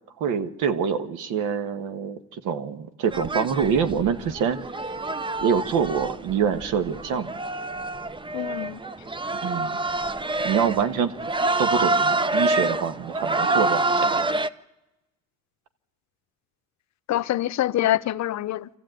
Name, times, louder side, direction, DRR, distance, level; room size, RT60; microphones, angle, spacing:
voice 1, 0.2-4.6 5.4-7.3 9.4-9.8 10.4-11.1 11.6-14.2, right 7 dB, 85° right, 1.5 m, -25 dB
sound 1, 3.1-14.5, right 2 dB, 15° right, 0.7 m, -27 dB
voice 2, 8.3-8.8 17.1-18.7, left 13 dB, 60° left, 0.7 m, -25 dB
25.0 x 15.0 x 9.1 m
cardioid pair, 90°, 31 cm